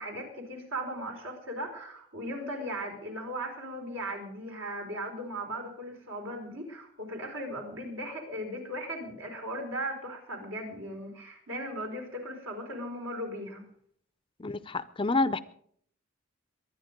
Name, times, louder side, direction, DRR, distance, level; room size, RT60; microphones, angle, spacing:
voice 1, 0.0-13.7, right 1 dB, 75° right, 2 dB, 4.5 m, -37 dB
voice 2, 14.4-15.4, left 3 dB, 25° left, 14 dB, 0.6 m, -28 dB
23.0 x 10.0 x 5.2 m, 0.63 s
head